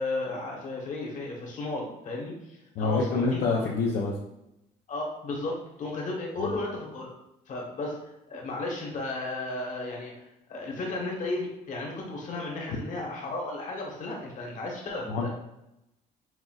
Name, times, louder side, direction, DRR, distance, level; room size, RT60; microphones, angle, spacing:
voice 1, 0.0-3.7 4.9-7.1 7.5-15.3, left 2 dB, 45° left, -1 dB, 1.2 m, -34 dB
voice 2, 2.8-4.2 6.4-6.6 15.1-15.3, left 3 dB, 65° left, -1 dB, 0.6 m, -27 dB
5.9 x 2.6 x 2.4 m, 0.87 s
cardioid pair, 110°, 17 cm